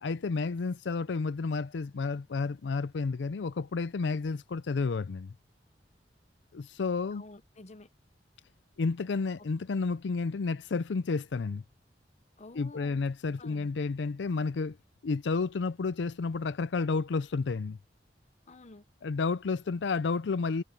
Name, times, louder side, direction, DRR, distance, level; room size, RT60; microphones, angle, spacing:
voice 1, 0.0-5.3 6.5-7.2 8.8-11.6 12.6-14.8 15.0-17.8 19.0-20.6, left 4 dB, 80° left, 0.5 m, -31 dB
voice 2, 7.1-7.9 9.4-9.5 12.4-13.1 13.4-13.7 18.5-18.9, left 2 dB, 40° left, 1.0 m, -50 dB
head